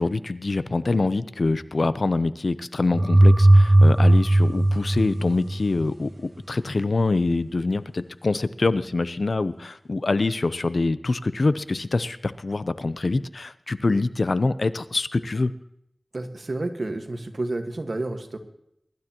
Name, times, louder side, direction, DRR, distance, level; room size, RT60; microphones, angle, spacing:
voice 1, 0.0-15.5, left 3 dB, 80° left, 14 dB, 0.6 m, -25 dB
sound 1, 2.9-5.8, right 1 dB, 35° right, 0.6 m, -16 dB
voice 2, 16.1-18.4, right 2 dB, 70° right, 6 dB, 1.5 m, -30 dB
22.5 x 12.0 x 3.0 m, 0.76 s
wide cardioid pair, 50°, 0 cm